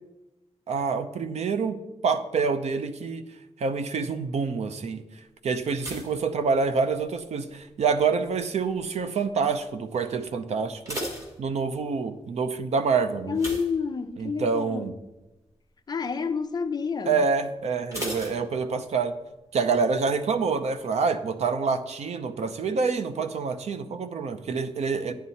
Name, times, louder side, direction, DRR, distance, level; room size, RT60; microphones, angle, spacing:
voice 1, 0.7-1.8 2.0-3.2 3.6-5.0 5.4-11.0 11.4-13.4 14.2-14.9 17.1-19.1 19.5-25.1, right 5 dB, 80° right, 0.7 m, -27 dB
sound 1, 5.7-7.2 7.5-8.0 8.6-9.0 9.3-9.4 9.8-9.9 10.5-12.0 13.3-14.5 14.8-15.1 15.5-15.6 17.9-19.1 19.4-19.5, equal, 30° right, 2.2 m, -37 dB
voice 2, 13.3-14.9 15.9-17.2, left 5 dB, 40° left, 0.6 m, -29 dB
10.0 x 9.4 x 4.2 m
wide cardioid pair, 180°, 11 cm